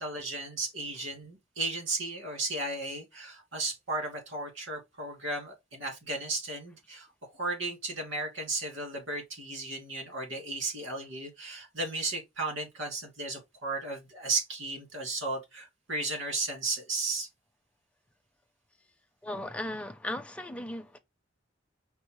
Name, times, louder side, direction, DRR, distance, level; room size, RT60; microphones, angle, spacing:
voice 1, 0.0-7.1 7.4-17.3, right 3 dB, 85° right, 2.5 m, -34 dB
voice 2, 19.2-21.0, left 1 dB, 5° left, 0.5 m, -37 dB
5.3 x 2.0 x 4.7 m
head